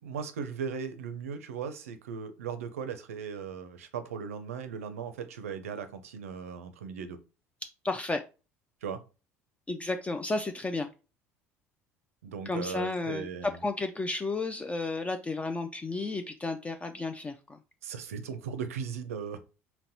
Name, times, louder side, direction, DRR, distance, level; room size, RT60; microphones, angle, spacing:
voice 1, 0.0-7.2 8.8-9.0 12.2-13.6 17.8-19.4, right 6 dB, 80° right, 0.5 m, -37 dB
voice 2, 7.8-8.2 9.7-10.9 12.5-17.6, left 3 dB, 15° left, 0.3 m, -32 dB
3.9 x 2.1 x 2.7 m
figure-of-eight pair, 65°, 8 cm